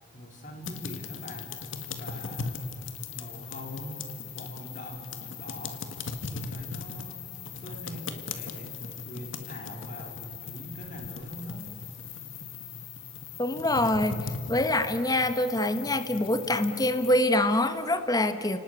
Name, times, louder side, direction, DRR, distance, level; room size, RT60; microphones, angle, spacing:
voice 1, 0.1-1.6 2.0-2.7 3.1-4.0 4.3-5.9 6.3-7.3 7.6-8.8 9.1-11.7, equal, 40° left, 2 dB, 3.2 m, -43 dB
sound 1, 0.6-17.1, left 4 dB, 80° left, 1.8 m, -39 dB
voice 2, 13.4-18.6, left 1 dB, 20° left, 10 dB, 1.2 m, -25 dB
30.0 x 19.0 x 8.4 m, 2.6 s
head